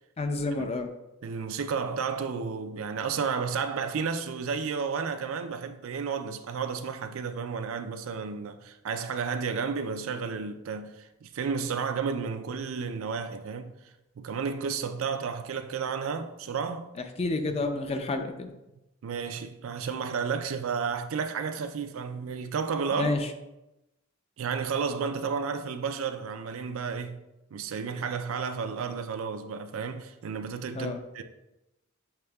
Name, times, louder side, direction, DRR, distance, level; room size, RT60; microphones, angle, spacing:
voice 1, 0.2-0.9 17.0-18.5 22.9-23.3 30.7-31.0, left 2 dB, 30° left, 0.4 m, -30 dB
voice 2, 1.2-13.7 14.2-16.9 19.0-23.1 24.4-27.2 27.5-31.2, right 5 dB, 75° right, 0.4 m, -32 dB
6.7 x 3.5 x 2.3 m
head